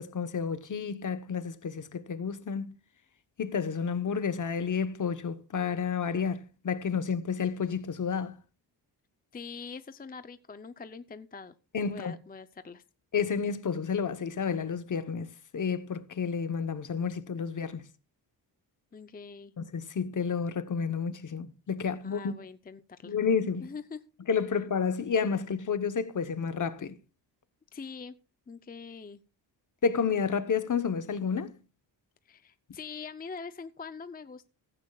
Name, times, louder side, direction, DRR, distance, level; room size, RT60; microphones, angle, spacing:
voice 1, 0.0-2.7 3.4-8.4 11.7-12.1 13.1-17.9 19.6-22.3 23.0-23.7 24.3-27.0 29.8-31.6, left 6 dB, 45° left, 1.0 m, -30 dB
voice 2, 9.3-11.6 11.8-12.8 18.9-19.5 22.0-23.2 23.6-24.0 27.7-28.1 28.5-29.2 32.2-34.5, left 5 dB, 20° left, 0.6 m, -43 dB
16.0 x 14.0 x 2.4 m
wide cardioid pair, 120°, 44 cm